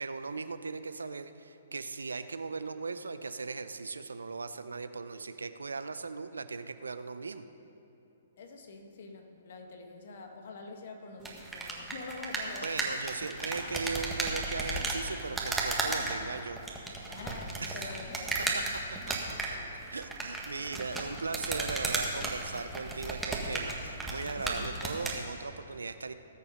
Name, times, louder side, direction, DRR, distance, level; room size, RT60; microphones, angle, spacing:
voice 1, 0.0-7.5 12.6-16.6 17.6-17.9 18.5-18.6 19.1-19.2 19.9-26.1, right 4 dB, 85° right, 11 dB, 0.6 m, -38 dB
voice 2, 8.4-12.8 16.0-16.1 17.1-18.6 19.6-19.7 24.5-24.7, left 3 dB, 60° left, 4 dB, 1.6 m, -46 dB
sound 1, 11.2-25.2, right 2 dB, 5° right, 1.6 m, -35 dB
19.0 x 6.9 x 5.2 m, 2.8 s
hypercardioid pair, 130°, 0 cm